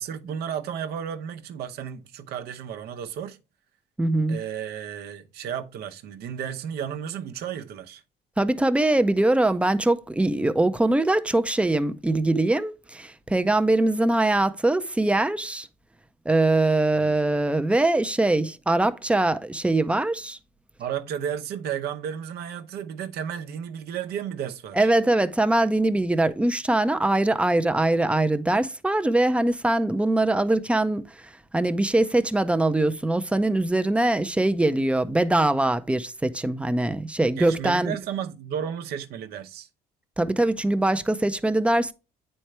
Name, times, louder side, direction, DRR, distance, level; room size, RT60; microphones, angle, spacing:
voice 1, 0.0-3.4 4.3-8.0 17.0-17.2 20.8-24.9 37.4-39.7, right 8 dB, 70° right, 0.8 m, -33 dB
voice 2, 4.0-4.4 8.4-15.7 16.3-20.4 24.7-38.0 40.2-41.9, right 2 dB, 5° right, 0.5 m, -22 dB
9.1 x 4.4 x 3.3 m
cardioid pair, 110°, 17 cm